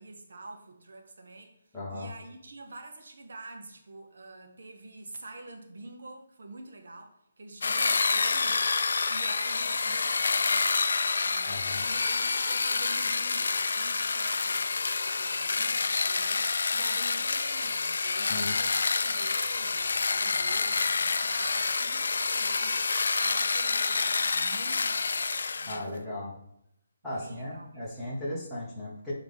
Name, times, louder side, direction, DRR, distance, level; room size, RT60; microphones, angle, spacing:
voice 1, 0.0-8.7 9.1-26.1 27.1-27.9, right 2 dB, 70° right, 4 dB, 1.0 m, -46 dB
voice 2, 1.7-2.1 11.5-11.8 18.3-18.5 25.7-26.3 27.0-29.1, left 1 dB, 5° left, -9 dB, 1.1 m, -36 dB
sound 1, 7.6-25.8, left 4 dB, 65° left, 0.3 m, -28 dB
7.2 x 3.9 x 3.5 m, 0.78 s
hypercardioid pair, 175°, 0 cm